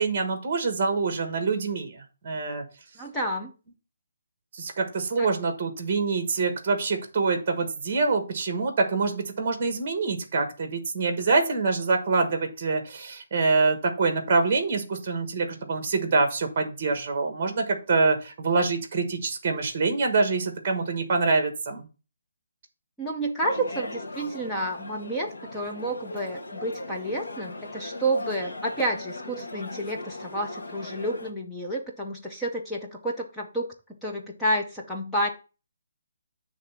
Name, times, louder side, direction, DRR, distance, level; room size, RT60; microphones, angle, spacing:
voice 1, 0.0-2.6 4.6-21.9, right 4 dB, 20° right, 6 dB, 1.2 m, -25 dB
voice 2, 3.0-3.5 5.2-5.3 23.0-33.7 34.0-35.3, right 1 dB, 5° left, -2 dB, 0.4 m, -30 dB
sound 1, 23.4-31.3, left 2 dB, 80° left, 1.5 m, -39 dB
7.6 x 3.3 x 5.7 m, 0.33 s
hypercardioid pair, 180°, 0 cm